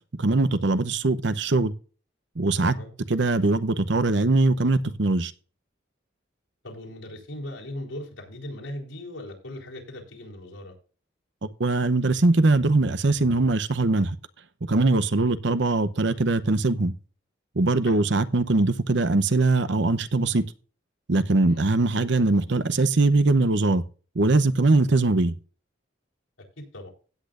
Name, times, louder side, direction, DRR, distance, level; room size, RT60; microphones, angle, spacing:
voice 1, 0.2-1.7 2.4-2.8 3.1-5.3 11.6-14.2 14.7-16.9 17.6-20.4 21.1-23.8 24.1-25.3, right 2 dB, 65° right, 0.8 m, -21 dB
voice 2, 2.6-2.9 6.6-10.7 17.8-18.1 21.5-21.6 26.6-26.9, left 1 dB, 85° left, 4.0 m, -38 dB
16.5 x 8.5 x 2.5 m
head